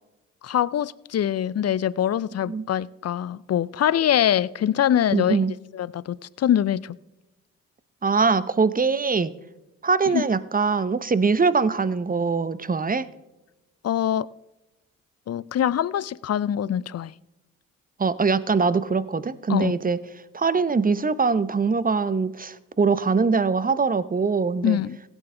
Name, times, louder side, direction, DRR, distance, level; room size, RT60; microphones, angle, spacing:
voice 1, 0.4-5.4 5.7-7.0 10.1-10.3 13.8-14.3 15.3-17.1 19.5-19.7 24.6-25.0, left 10 dB, 45° left, 0.5 m, -24 dB
voice 2, 5.1-5.5 8.0-9.3 9.8-13.1 18.0-20.0 20.3-24.8, right 4 dB, 25° right, 0.8 m, -22 dB
16.0 x 9.0 x 3.4 m
hypercardioid pair, 40°, 35 cm